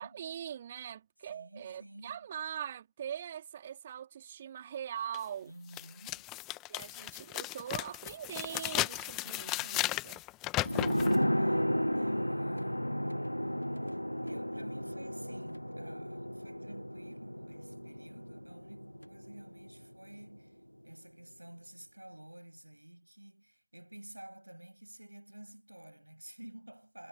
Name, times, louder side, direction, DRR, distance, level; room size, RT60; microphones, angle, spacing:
voice 1, 0.0-5.5 6.7-10.2, right 9 dB, 65° right, 2.8 m, -42 dB
voice 2, 1.3-2.3 4.3-4.4 5.4-6.3 9.2-10.1 11.3-13.1 14.2-27.1, right 1 dB, 85° right, 6.9 m, -52 dB
sound 1, 5.1-5.2 5.7-11.2, left 19 dB, 40° left, 1.3 m, -35 dB
sound 2, 10.6-19.9 20.2-20.3, equal, 90° left, 0.6 m, -34 dB
figure-of-eight pair, 90°, 0 cm